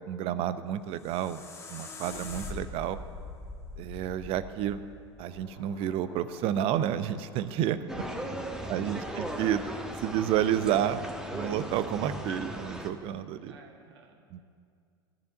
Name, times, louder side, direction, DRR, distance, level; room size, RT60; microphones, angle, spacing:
voice 1, 0.1-1.4 1.7-3.0 3.8-4.8 5.2-8.0 8.7-9.6 10.0-11.0 11.3-13.5 14.3-14.4, right 10 dB, 45° right, 13 dB, 0.7 m, -30 dB
sound 1, 0.7-5.8, left 3 dB, 20° left, 1.9 m, -43 dB
sound 2, 5.2-10.5, left 4 dB, 50° left, 2.3 m, -56 dB
sound 3, 7.9-12.9, right 1 dB, 5° right, 1.2 m, -37 dB
voice 2, 8.0-9.2 13.5-14.2, right 4 dB, 70° right, 3 dB, 1.8 m, -52 dB
13.5 x 7.0 x 8.9 m, 2.2 s
figure-of-eight pair, 80°, 14 cm